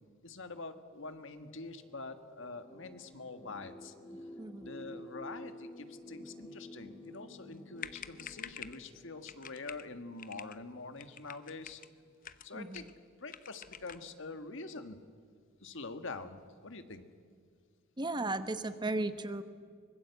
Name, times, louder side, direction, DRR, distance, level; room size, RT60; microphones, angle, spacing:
voice 1, 0.2-3.9 4.6-11.8 12.4-12.9 13.2-15.0 15.6-17.0, left 3 dB, 60° left, 9 dB, 1.7 m, -45 dB
sound 1, 1.3-12.0 12.9-13.0, left 1 dB, 15° left, 2.9 m, -52 dB
sound 2, 7.5-7.6 7.8-8.8 9.3-9.9 10.2-10.6 11.0-11.9 12.2-13.0 13.3-14.1, left 8 dB, 40° left, 0.8 m, -47 dB
voice 2, 18.0-19.4, right 2 dB, 20° right, 11 dB, 1.0 m, -35 dB
24.0 x 21.0 x 8.2 m, 2.1 s
head